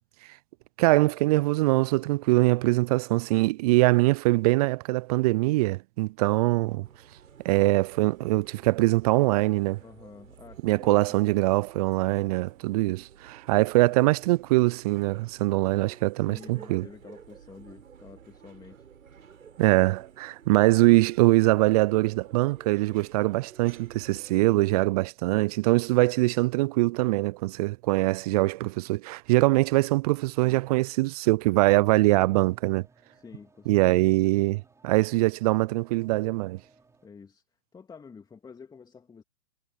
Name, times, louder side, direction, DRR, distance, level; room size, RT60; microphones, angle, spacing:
voice 1, 0.8-6.9 7.4-9.8 10.6-16.9 19.6-32.9 33.7-36.6, right 20 dB, 25° right, 0.7 m, -23 dB
sound 1, 6.8-24.3, right 7 dB, 65° right, 6.5 m, -52 dB
voice 2, 9.8-11.2 13.5-14.1 16.1-18.9 33.1-34.1 37.0-37.4 37.7-39.2, left 5 dB, 10° left, 2.3 m, -49 dB
sound 2, 32.0-37.1, right 3 dB, 5° right, 5.6 m, -61 dB
figure-of-eight pair, 120°, 44 cm